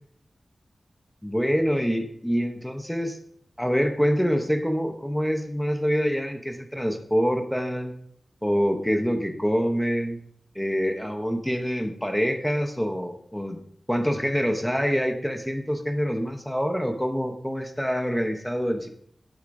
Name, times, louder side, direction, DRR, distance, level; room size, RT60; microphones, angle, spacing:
voice 1, 1.2-3.2 3.6-7.9 8.4-10.2 10.5-13.6 13.9-18.9, equal, 5° left, 5 dB, 0.7 m, -25 dB
8.4 x 8.1 x 2.6 m, 0.64 s
wide cardioid pair, 105°, 0 cm